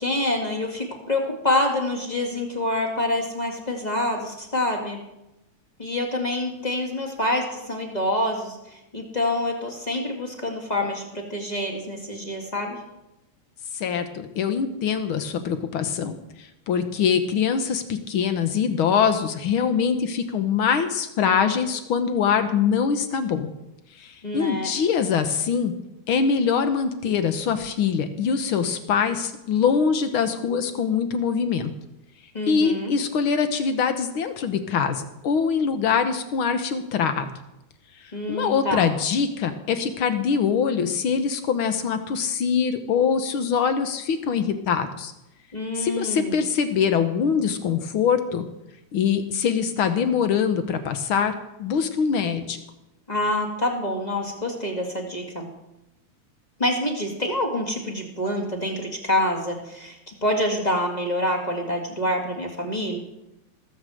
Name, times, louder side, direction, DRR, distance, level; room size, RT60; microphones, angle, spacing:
voice 1, 0.0-5.0 5.8-12.8 24.2-24.7 32.3-32.9 38.1-38.9 45.5-46.4 53.1-55.5 56.6-63.0, left 1 dB, 15° left, 1 dB, 1.7 m, -26 dB
voice 2, 13.7-23.5 24.0-25.7 26.1-31.7 32.5-37.3 38.3-45.1 45.7-48.4 48.9-51.3 51.6-52.6, left 6 dB, 60° left, 9 dB, 1.4 m, -23 dB
19.0 x 7.2 x 7.7 m, 0.90 s
omnidirectional pair, 3.5 m